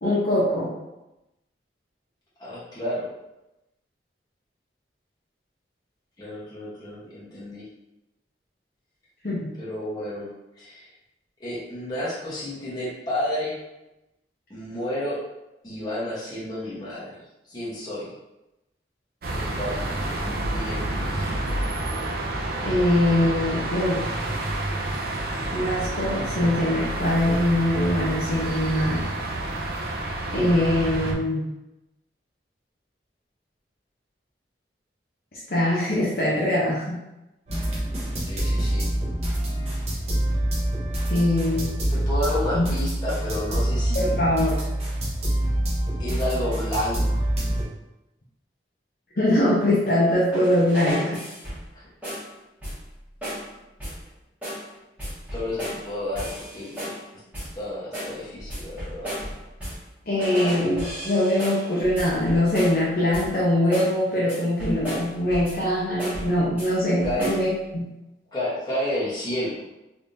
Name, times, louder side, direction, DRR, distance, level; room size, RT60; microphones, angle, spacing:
voice 1, 0.0-0.7 9.2-9.5 22.6-24.1 25.5-29.0 30.3-31.5 35.3-37.0 41.1-41.8 42.5-42.6 43.9-44.6 49.2-51.2 60.1-67.9, left 1 dB, 55° left, -6 dB, 0.8 m, -22 dB
voice 2, 2.4-3.1 6.2-7.7 9.6-10.3 10.6-10.9 11.4-13.6 14.5-15.2 15.6-17.2 17.5-18.1 19.3-19.8 20.2-21.3 38.3-38.9 41.2-41.3 41.9-44.2 46.0-47.3 51.0-51.1 51.7-52.1 55.3-56.9 57.5-59.1 67.0-67.3 68.3-69.7, left 1 dB, 20° left, -9 dB, 1.1 m, -31 dB
sound 1, 19.2-31.1, right 1 dB, 55° right, 0.5 m, -29 dB
sound 2, 37.5-47.6, right 1 dB, 35° right, 0.9 m, -26 dB
sound 3, 50.3-51.7 52.0-52.3 52.6-52.9 53.2-53.5 53.8-54.1 54.4-54.7 55.0-55.9 56.2-57.0 57.3-57.6 57.9-59.9 60.2-62.8 63.1-63.4 63.7-64.0 64.3-65.7 66.0-66.7 67.0-67.5, equal, 10° right, 1.4 m, -34 dB
3.4 x 3.1 x 2.7 m, 0.95 s
head